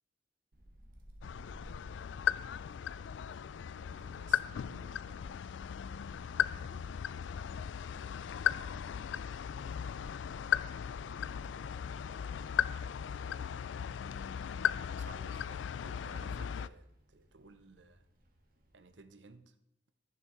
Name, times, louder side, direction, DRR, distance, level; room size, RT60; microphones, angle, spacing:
Wind, 0.5-19.0, equal, 55° right, 1.7 m, -61 dB
sound 1, 1.2-16.7, left 8 dB, 85° left, 0.3 m, -37 dB
voice 1, 3.8-5.8 6.5-7.7 11.9-13.0 14.9-18.1 18.7-19.5, right 3 dB, 75° right, 10 dB, 0.8 m, -58 dB
12.0 x 7.0 x 4.6 m, 0.83 s
head